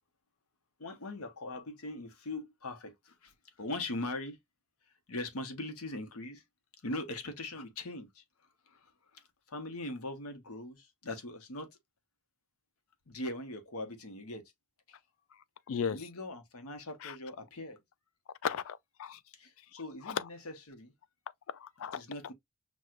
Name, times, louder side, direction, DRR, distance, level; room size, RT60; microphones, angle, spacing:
voice 1, 0.8-4.4 5.1-6.4 6.8-8.2 8.7-11.8 13.1-14.5 14.9-15.0 15.8-17.8 19.3-20.9 21.9-22.3, left 2 dB, 90° left, 1.0 m, -41 dB
voice 2, 15.7-16.0 17.0-17.1 18.4-19.2 20.1-20.3 21.5-22.0, left 7 dB, 70° left, 0.4 m, -35 dB
6.1 x 2.3 x 2.4 m
head